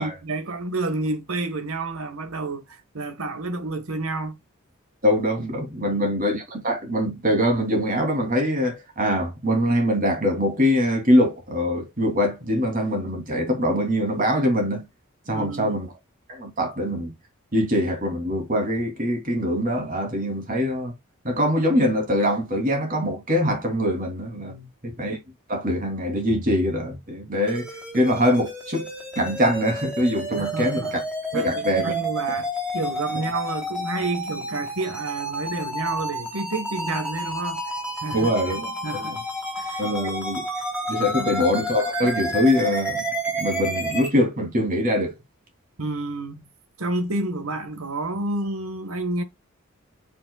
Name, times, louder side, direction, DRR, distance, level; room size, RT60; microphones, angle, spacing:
voice 1, 0.0-4.4 5.8-6.1 15.3-15.8 24.4-24.7 30.4-31.0 31.3-37.6 38.0-38.3 38.6-39.2 39.6-40.1 40.6-40.7 41.2-41.4 45.8-46.4 46.8-49.2, right 2 dB, 85° right, 1.5 m, -30 dB
voice 2, 5.0-14.8 15.3-15.9 16.3-17.1 17.5-20.9 21.2-24.5 24.8-25.2 25.5-27.7 27.9-28.9 29.2-31.0 31.3-31.9 32.3-32.4 33.1-33.2 38.1-38.7 38.9-39.1 39.8-40.4 40.9-43.1 43.3-45.1, equal, 40° right, 2.9 m, -23 dB
sound 1, 27.5-44.1, right 1 dB, 5° right, 3.0 m, -30 dB
8.5 x 5.5 x 2.3 m
head